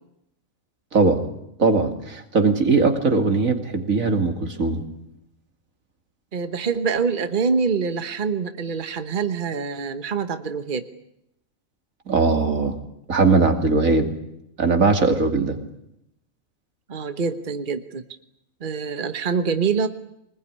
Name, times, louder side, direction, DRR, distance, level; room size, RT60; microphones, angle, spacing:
voice 1, 0.9-1.3 1.6-4.8 12.1-12.8 13.1-14.1 14.6-15.6, right 3 dB, 80° right, 5 dB, 3.0 m, -20 dB
voice 2, 6.3-10.9 15.4-15.7 16.9-18.0 18.6-19.9, right 5 dB, 40° right, 9 dB, 1.3 m, -25 dB
24.0 x 20.5 x 9.9 m, 0.81 s
omnidirectional pair, 1.4 m